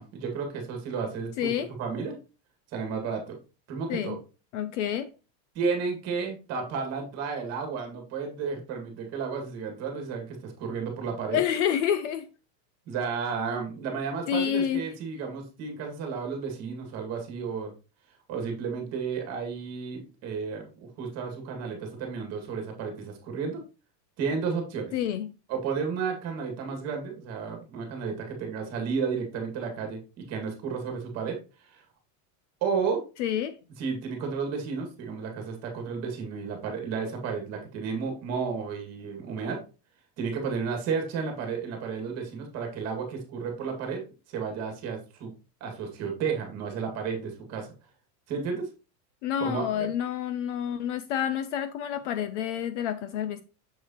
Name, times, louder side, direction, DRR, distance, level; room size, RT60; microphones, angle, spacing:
voice 1, 0.0-1.5 1.8-2.2 2.7-3.4 3.7-4.2 5.6-11.4 12.9-17.7 18.3-23.6 24.2-24.9 25.5-31.4 31.7-31.8 32.6-33.0 33.8-39.6 40.2-44.0 44.3-45.3 45.6-47.7 48.3-48.7 49.4-49.9, right 5 dB, 30° right, 2.0 m, -32 dB
voice 2, 1.4-1.7 3.9-4.2 4.5-5.1 11.3-12.3 14.3-14.8 24.9-25.3 33.2-33.6 49.2-53.4, left 9 dB, 45° left, 0.5 m, -28 dB
6.8 x 6.3 x 2.9 m
supercardioid pair, 170°, 49 cm